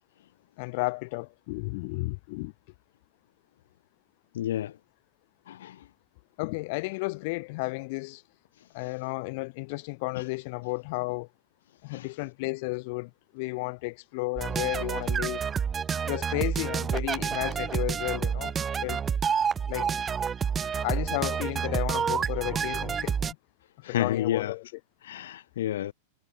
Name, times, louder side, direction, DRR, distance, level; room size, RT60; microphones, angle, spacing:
voice 1, 0.6-2.5 6.4-8.2 8.7-11.3 11.8-15.4 16.0-18.6 18.8-19.0 19.7-20.0 20.8-23.4 23.8-24.7, left 26 dB, 55° left, 3.8 m, -33 dB
voice 2, 4.3-4.7 5.5-5.8 11.9-12.1 23.8-24.5 25.0-25.9, left 12 dB, 80° left, 2.0 m, -30 dB
sound 1, 14.4-23.3, right 7 dB, 20° right, 3.3 m, -29 dB
supercardioid pair, 135°, 0 cm